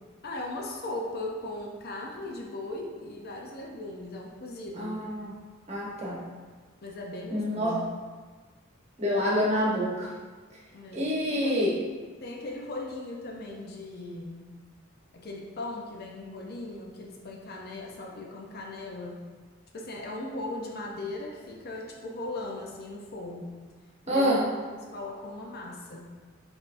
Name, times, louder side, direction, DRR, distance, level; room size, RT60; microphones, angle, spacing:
voice 1, 0.2-5.0 6.8-7.9 10.7-11.9 12.2-14.6 15.1-19.2 19.7-23.6 24.1-26.1, left 2 dB, 50° left, -1 dB, 0.6 m, -38 dB
voice 2, 4.8-5.3 5.7-6.2 7.3-7.7 9.0-10.1 10.9-11.7 24.1-24.4, equal, 30° right, -5 dB, 1.1 m, -27 dB
5.6 x 3.5 x 2.5 m, 1.4 s
head